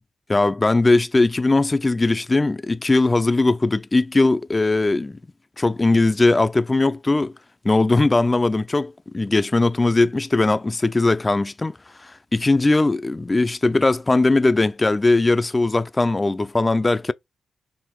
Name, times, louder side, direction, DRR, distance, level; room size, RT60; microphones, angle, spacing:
voice 1, 0.3-5.2 5.6-7.3 7.6-17.1, left 2 dB, 30° left, 0.3 m, -19 dB
2.9 x 2.5 x 3.4 m
supercardioid pair, 45°, 0 cm